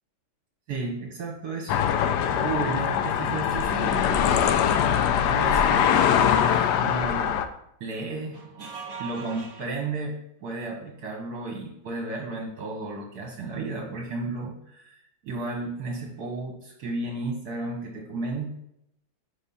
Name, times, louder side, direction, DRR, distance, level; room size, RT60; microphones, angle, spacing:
voice 1, 0.7-2.0 2.3-4.6 5.3-7.3 7.8-18.5, right 3 dB, 60° right, 0 dB, 1.3 m, -33 dB
sound 1, 1.7-7.4, left 8 dB, 75° left, 1.0 m, -22 dB
5.7 x 3.6 x 5.4 m, 0.78 s
omnidirectional pair, 2.1 m